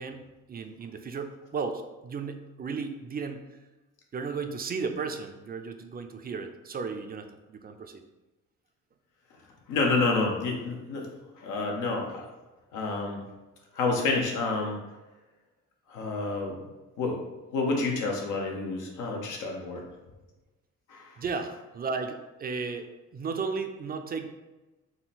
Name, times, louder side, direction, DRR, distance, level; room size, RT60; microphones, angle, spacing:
voice 1, 0.0-3.5 4.1-8.0 21.2-24.4, right 5 dB, 30° right, 7 dB, 0.4 m, -35 dB
voice 2, 9.7-11.1 11.4-12.3 12.7-13.2 13.7-14.8 15.9-16.6 17.0-17.2 17.5-19.8 20.9-21.2, left 3 dB, 90° left, 0 dB, 0.9 m, -29 dB
3.8 x 2.1 x 4.0 m, 1.1 s
cardioid pair, 90°, 30 cm